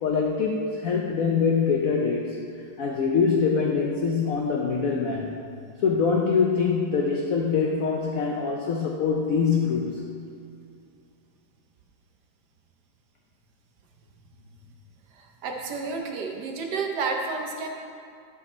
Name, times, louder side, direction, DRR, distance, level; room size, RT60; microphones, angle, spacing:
voice 1, 0.0-2.4 2.8-5.4 5.8-10.1, left 5 dB, 85° left, 1 dB, 0.7 m, -24 dB
voice 2, 15.2-17.7, right 4 dB, 65° right, 1 dB, 1.1 m, -30 dB
9.7 x 5.3 x 4.2 m, 2.4 s
omnidirectional pair, 2.2 m